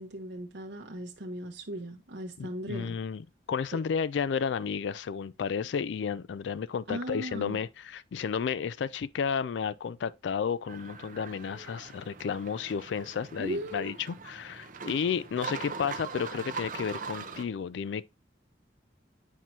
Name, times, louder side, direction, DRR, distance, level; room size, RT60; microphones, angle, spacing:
voice 1, 0.0-3.0 3.7-3.8 6.9-7.6 13.4-14.0, right 1 dB, 70° right, 1.0 m, -37 dB
voice 2, 2.4-18.1, left 6 dB, 80° left, 0.3 m, -32 dB
sound 1, 10.7-17.4, right 5 dB, 45° right, 0.8 m, -41 dB
9.2 x 4.5 x 2.7 m
head